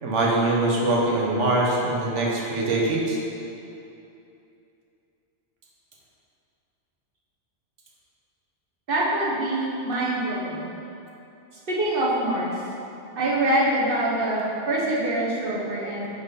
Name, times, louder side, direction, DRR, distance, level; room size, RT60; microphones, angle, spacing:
voice 1, 0.0-3.2, right 2 dB, 85° right, -3 dB, 1.4 m, -23 dB
voice 2, 8.9-10.7 11.7-12.6 13.1-16.1, right 1 dB, 50° right, -5 dB, 1.4 m, -25 dB
6.8 x 5.4 x 4.1 m, 2.8 s
omnidirectional pair, 1.2 m